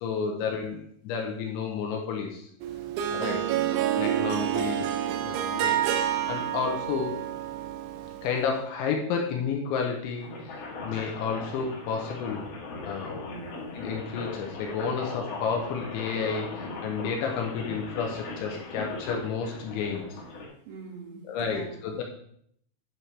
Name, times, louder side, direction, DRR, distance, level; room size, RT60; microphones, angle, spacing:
voice 1, 0.0-2.5 3.1-3.4 3.9-4.9 5.2-7.1 8.2-12.4 12.8-13.3 13.7-20.1 21.2-22.0, left 6 dB, 80° left, 1 dB, 3.1 m, -31 dB
Harp, 2.6-8.4, right 10 dB, 80° right, 3.0 m, -28 dB
voice 2, 3.2-3.7 13.2-13.7 20.6-21.7, right 4 dB, 55° right, -2 dB, 3.2 m, -44 dB
sound 1, 10.2-20.5, left 3 dB, 55° left, 2.4 m, -38 dB
10.5 x 6.3 x 3.3 m, 0.69 s
omnidirectional pair, 5.6 m